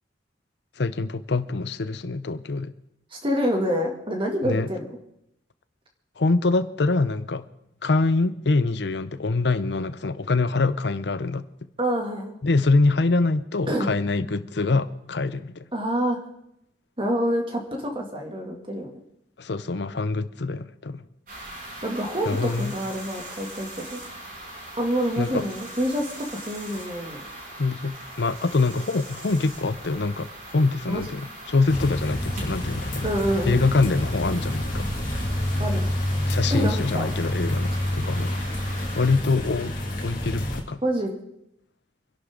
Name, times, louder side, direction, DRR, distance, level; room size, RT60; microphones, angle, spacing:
voice 1, 0.8-2.7 4.4-4.7 6.2-7.4 7.8-11.5 12.4-15.5 19.4-21.0 22.3-22.7 25.2-25.4 27.6-30.3 30.5-33.1 33.5-34.9 36.3-38.3 39.0-39.7 40.0-40.8, left 3 dB, 65° left, 14 dB, 0.7 m, -24 dB
voice 2, 3.1-4.9 11.8-12.4 13.7-13.9 15.7-16.2 17.0-18.9 21.8-24.0 24.8-27.2 30.9-31.1 33.0-33.6 35.6-35.9 36.5-37.1 40.8-41.2, equal, 30° right, 2 dB, 2.5 m, -27 dB
sound 1, 21.3-39.2, right 1 dB, 50° right, 5.9 m, -40 dB
sound 2, 31.7-40.6, left 1 dB, 45° left, 2.4 m, -28 dB
27.5 x 11.0 x 3.9 m, 0.80 s
head